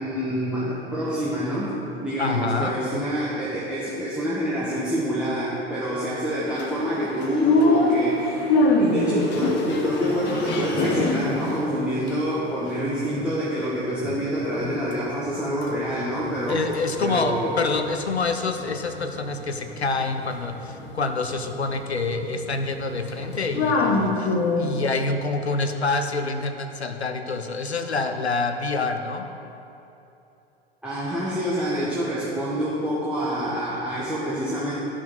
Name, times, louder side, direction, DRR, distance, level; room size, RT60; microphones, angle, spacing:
voice 1, 0.0-16.6 17.0-17.6 30.8-34.8, equal, 5° right, -9 dB, 1.4 m, -27 dB
voice 2, 2.2-2.7 16.5-29.3, left 3 dB, 85° left, 7 dB, 0.8 m, -27 dB
sound 1, 6.5-13.6 14.0-15.0 15.3-24.9, left 2 dB, 35° left, 1.2 m, -26 dB
14.0 x 6.2 x 3.9 m, 2.9 s
figure-of-eight pair, 85°, 32 cm